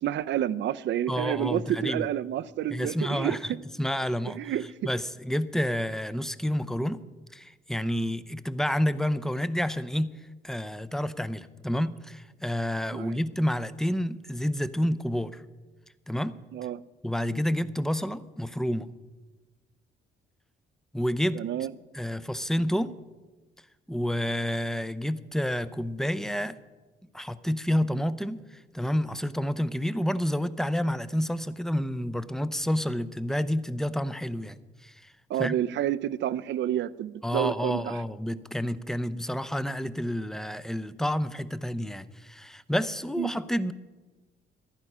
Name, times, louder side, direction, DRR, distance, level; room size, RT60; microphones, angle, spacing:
voice 1, 0.0-3.4 4.3-4.8 12.9-13.2 16.5-16.8 21.3-21.7 35.3-38.0 43.2-43.3, right 11 dB, 65° right, 0.5 m, -29 dB
voice 2, 1.1-2.1 2.7-4.4 4.8-7.0 7.3-10.2 10.4-15.4 16.1-16.4 17.0-18.9 20.9-21.4 21.9-22.9 23.9-26.6 27.1-35.1 35.4-35.5 37.2-43.7, equal, ahead, 0.6 m, -29 dB
14.5 x 11.5 x 5.5 m
cardioid pair, 90°, 20 cm